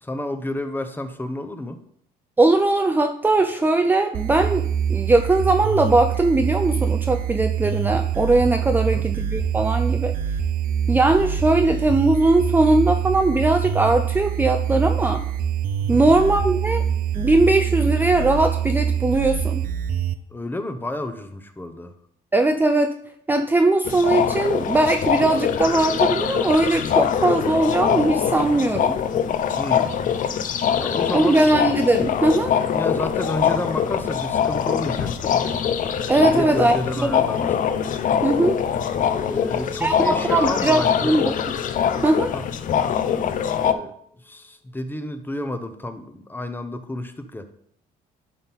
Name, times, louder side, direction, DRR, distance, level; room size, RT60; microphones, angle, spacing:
voice 1, 0.0-1.8 8.7-9.0 15.8-16.2 20.3-22.0 29.6-29.9 30.7-31.4 32.7-35.4 36.3-37.6 39.3-41.2 42.3-42.4 43.5-47.5, left 2 dB, 10° left, 9 dB, 0.7 m, -31 dB
voice 2, 2.4-10.1 10.9-15.2 15.9-16.8 17.1-19.6 22.3-22.9 23.3-29.0 31.1-32.5 36.1-36.8 37.0-37.2 38.2-38.6 39.8-41.2 42.0-42.3, right 2 dB, 10° right, 6 dB, 0.4 m, -20 dB
sound 1, 4.1-20.1, right 8 dB, 55° right, 0.6 m, -24 dB
sound 2, 23.9-43.7, left 8 dB, 50° left, 0.6 m, -23 dB
Chink clink, 38.9-43.2, left 4 dB, 75° left, 3.7 m, -40 dB
11.0 x 4.0 x 4.1 m, 0.67 s
cardioid pair, 110°, 17 cm